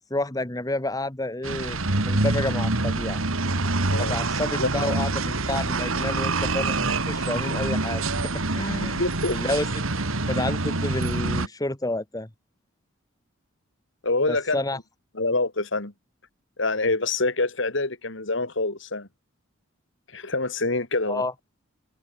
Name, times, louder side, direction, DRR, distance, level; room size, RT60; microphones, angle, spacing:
voice 1, 0.0-3.2 4.0-8.1 8.5-9.0 9.3-9.7 10.0-12.3 14.3-14.8 21.1-21.3, left 2 dB, 20° left, 1.3 m, -30 dB
sound 1, 1.4-11.5, right 2 dB, 85° right, 2.4 m, -26 dB
voice 2, 4.6-5.0 9.0-9.4 14.0-14.6 15.1-15.9 16.6-19.1 20.1-21.2, left 2 dB, 65° left, 2.5 m, -26 dB
head